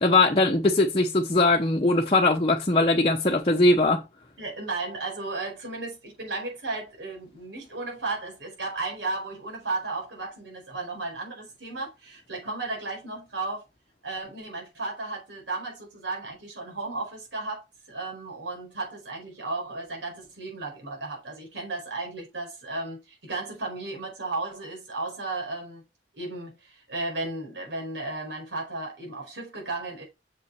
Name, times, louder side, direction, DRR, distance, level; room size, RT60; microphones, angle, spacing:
voice 1, 0.0-4.0, left 2 dB, 30° left, 0.9 m, -21 dB
voice 2, 4.4-13.6 14.0-25.8 26.1-30.0, right 3 dB, 85° right, 4.7 m, -34 dB
7.1 x 5.8 x 4.5 m
head